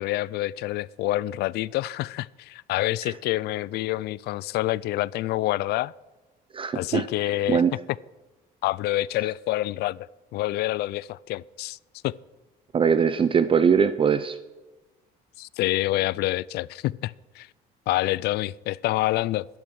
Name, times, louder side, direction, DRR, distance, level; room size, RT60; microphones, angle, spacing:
voice 1, 0.0-5.9 6.7-7.6 8.6-10.1 10.3-11.8 12.0-12.1 15.4-17.5 17.9-19.5, left 16 dB, 75° left, 0.4 m, -27 dB
voice 2, 6.5-7.1 7.5-7.7 12.7-14.4, right 6 dB, 30° right, 0.5 m, -21 dB
12.0 x 10.5 x 6.3 m
cardioid pair, 110°, 17 cm